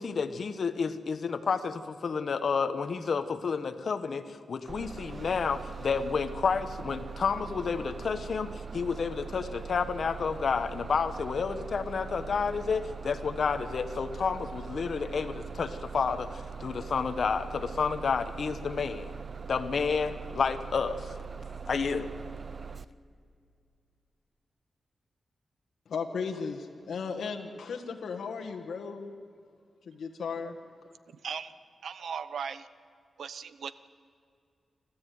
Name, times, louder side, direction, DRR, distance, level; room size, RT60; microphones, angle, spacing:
voice 1, 0.0-19.1 19.5-21.1 21.7-22.1, left 5 dB, 65° left, 11 dB, 1.2 m, -30 dB
Bus, 4.7-22.8, right 5 dB, 45° right, 0.7 m, -41 dB
voice 2, 25.9-29.1 29.9-30.5, left 5 dB, 80° left, 3 dB, 1.6 m, -35 dB
voice 3, 31.1-31.5 31.8-32.7 33.2-33.7, right 6 dB, 85° right, 14 dB, 0.9 m, -38 dB
29.0 x 13.5 x 9.4 m, 2.3 s
cardioid pair, 85°, 0 cm